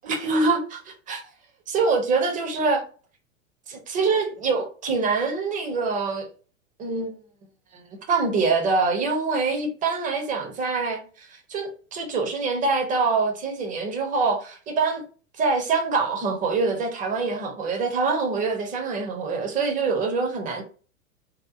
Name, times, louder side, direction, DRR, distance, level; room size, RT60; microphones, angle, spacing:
voice 1, 0.0-1.3 1.7-2.8 3.7-6.3 6.8-7.1 7.7-7.8 8.1-15.0 15.4-20.6, right 4 dB, 20° right, 0.6 m, -25 dB
2.8 x 2.1 x 2.4 m
figure-of-eight pair, 95°, 40 cm